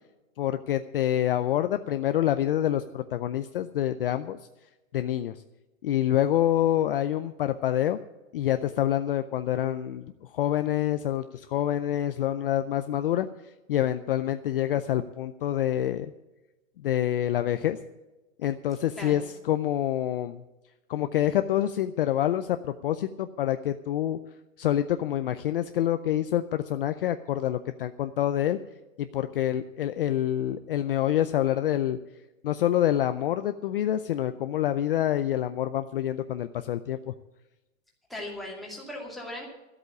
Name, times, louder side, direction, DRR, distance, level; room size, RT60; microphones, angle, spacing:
voice 1, 0.4-4.4 4.9-5.3 5.8-8.0 8.3-10.1 10.3-13.3 13.7-16.1 16.8-17.8 18.4-19.2 19.5-20.4 20.9-24.2 24.6-28.6 29.0-32.0 32.4-37.1, left 12 dB, 45° left, 10 dB, 0.5 m, -27 dB
voice 2, 19.0-19.3 38.1-39.4, left 1 dB, ahead, -3 dB, 2.3 m, -38 dB
13.5 x 8.1 x 8.3 m, 1.0 s
hypercardioid pair, 160°, 40 cm